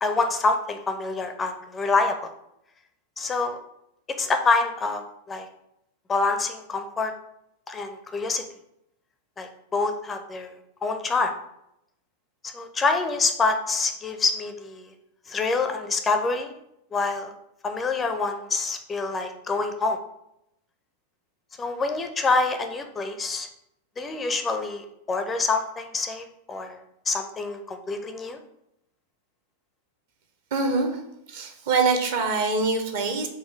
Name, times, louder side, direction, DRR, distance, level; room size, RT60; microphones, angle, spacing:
voice 1, 0.0-2.3 3.2-3.6 4.2-5.5 6.1-7.1 7.7-8.4 9.4-10.5 10.8-11.3 12.4-14.9 15.3-16.6 16.9-17.3 17.6-20.0 21.6-23.5 24.0-26.8 27.1-28.4, left 3 dB, 20° left, 6 dB, 0.4 m, -26 dB
voice 2, 30.5-31.0 31.3-33.3, right 4 dB, 55° right, 6 dB, 0.7 m, -24 dB
4.4 x 2.8 x 3.3 m, 0.80 s
figure-of-eight pair, 90°, 0 cm